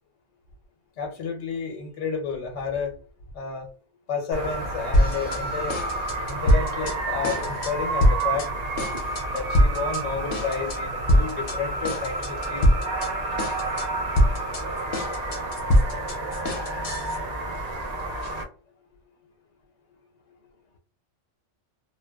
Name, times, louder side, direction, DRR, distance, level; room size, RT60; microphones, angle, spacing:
voice 1, 1.0-2.9 3.3-3.7 4.1-5.8 6.3-8.5 9.3-12.8, left 5 dB, 85° left, 1.0 m, -31 dB
sound 1, 4.3-18.4, right 2 dB, 45° right, 0.6 m, -30 dB
sound 2, 4.9-5.4 5.7-6.9 7.2-7.7 8.0-8.5 8.8-10.0 10.3-10.8 11.1-11.6 11.8-13.1 13.4-13.9 14.2-17.2, equal, 55° left, 0.7 m, -23 dB
2.8 x 2.1 x 2.2 m
omnidirectional pair, 1.2 m